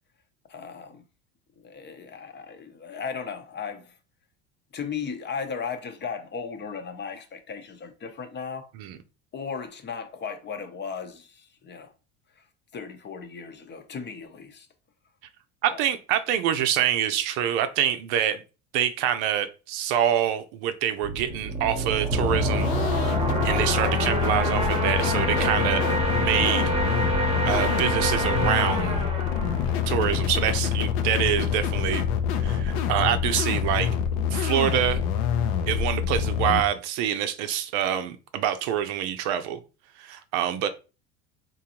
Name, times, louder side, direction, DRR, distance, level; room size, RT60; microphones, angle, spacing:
voice 1, 0.5-1.0 1.6-4.0 4.7-8.7 9.3-11.9 12.4-12.5 12.7-14.7 15.7-15.9, left 6 dB, 30° left, 0.7 m, -36 dB
voice 2, 15.6-18.4 18.7-23.2 23.4-25.8 26.1-26.7 27.4-29.0 29.9-32.1 32.4-33.9 34.3-35.0 35.7-39.6 40.0-40.7, right 10 dB, 70° right, 0.6 m, -26 dB
sound 1, 21.0-30.6, right 2 dB, 15° right, 0.9 m, -28 dB
sound 2, 22.1-36.6, left 8 dB, 70° left, 0.6 m, -26 dB
3.7 x 2.6 x 2.9 m
supercardioid pair, 100°, 35 cm